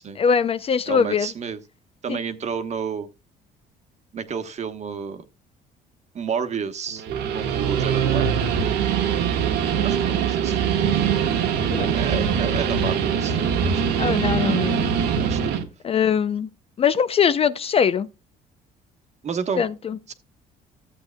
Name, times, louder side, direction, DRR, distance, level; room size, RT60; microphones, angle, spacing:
voice 1, 0.2-1.3 2.1-2.2 11.7-12.2 12.8-12.9 14.0-14.9 15.8-16.5 16.8-18.1 19.6-20.0, left 7 dB, 35° left, 0.4 m, -22 dB
voice 2, 0.9-1.6 2.0-3.1 4.1-5.2 6.1-7.0 7.3-8.3 9.8-11.5 11.9-13.9 15.2-15.5 19.2-19.7 20.1-20.2, right 6 dB, 40° right, 1.2 m, -30 dB
Guitar, 6.9-15.6, right 7 dB, 80° right, 1.3 m, -22 dB
14.5 x 7.9 x 2.2 m
cardioid pair, 110°, 17 cm